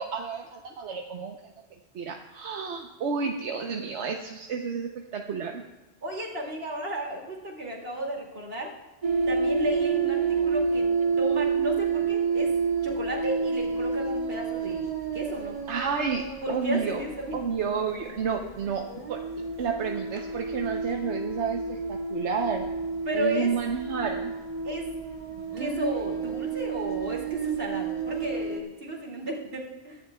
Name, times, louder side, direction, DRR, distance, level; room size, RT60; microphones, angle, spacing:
voice 1, 0.0-1.4 1.9-5.6 15.7-17.0 17.3-19.2 19.6-22.7 23.1-24.3, right 6 dB, 85° right, 3 dB, 1.1 m, -31 dB
voice 2, 6.0-8.7 9.3-10.9 11.2-12.5 12.8-15.6 16.4-17.4 23.0-23.5 24.6-24.9 25.3-30.0, right 1 dB, 60° right, -2 dB, 2.7 m, -33 dB
sound 1, 9.0-28.6, right 5 dB, 35° right, 1.3 m, -30 dB
23.5 x 11.0 x 2.3 m, 1.2 s
omnidirectional pair, 1.1 m